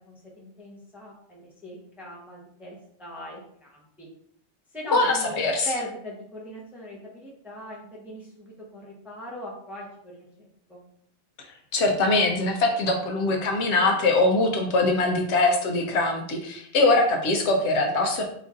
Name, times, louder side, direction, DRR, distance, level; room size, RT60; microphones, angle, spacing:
voice 1, 0.1-4.1 4.7-10.8, equal, ahead, -4 dB, 0.7 m, -40 dB
voice 2, 4.9-5.7 11.7-18.2, left 2 dB, 70° left, 3 dB, 0.8 m, -22 dB
3.0 x 2.5 x 3.6 m, 0.66 s
omnidirectional pair, 1.2 m